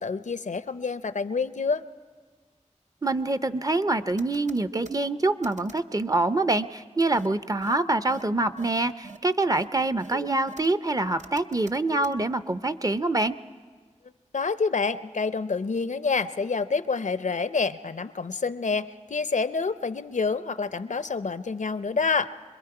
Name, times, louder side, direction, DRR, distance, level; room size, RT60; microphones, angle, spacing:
voice 1, 0.0-1.8 14.3-22.3, left 4 dB, 75° left, 13 dB, 0.5 m, -27 dB
voice 2, 3.0-13.4, right 2 dB, 30° right, 12 dB, 0.5 m, -25 dB
sound 1, 4.2-5.0 5.4-5.8 7.1-7.3 7.6-7.7 8.1-8.2 8.6-8.7 9.0-9.2 9.5-9.6 10.0-10.7 11.2-12.1, right 4 dB, 70° right, 0.6 m, -40 dB
25.5 x 21.5 x 4.8 m, 1.5 s
wide cardioid pair, 55°, 13 cm